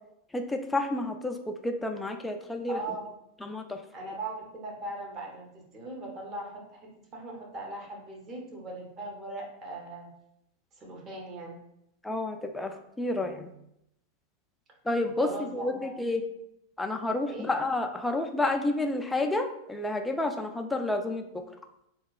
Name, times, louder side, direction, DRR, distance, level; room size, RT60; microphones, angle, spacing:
voice 1, 0.3-1.4 1.6-2.8 3.4-3.8 12.0-13.5 14.8-16.2 16.8-21.4, left 2 dB, 5° left, 4 dB, 0.3 m, -30 dB
voice 2, 2.7-3.1 3.9-10.1 10.7-11.6 15.2-16.2 17.3-17.5, right 2 dB, 30° right, -1 dB, 0.8 m, -39 dB
2.8 x 2.2 x 2.3 m, 0.78 s
figure-of-eight pair, 90°, 0 cm